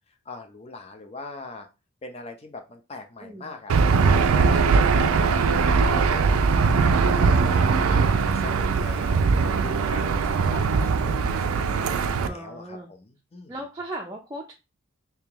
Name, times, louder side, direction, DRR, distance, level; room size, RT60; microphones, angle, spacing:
voice 1, 0.3-1.7 2.0-5.3 5.8-6.7 7.1-9.3 9.6-13.7, left 3 dB, 30° left, 5 dB, 0.6 m, -41 dB
voice 2, 3.2-3.6 9.5-9.8 12.2-12.9 13.5-14.5, right 1 dB, 15° right, -1 dB, 0.4 m, -37 dB
Aircraft / Engine, 3.7-12.3, right 5 dB, 90° right, 0.4 m, -21 dB
3.5 x 2.8 x 3.5 m, 0.27 s
head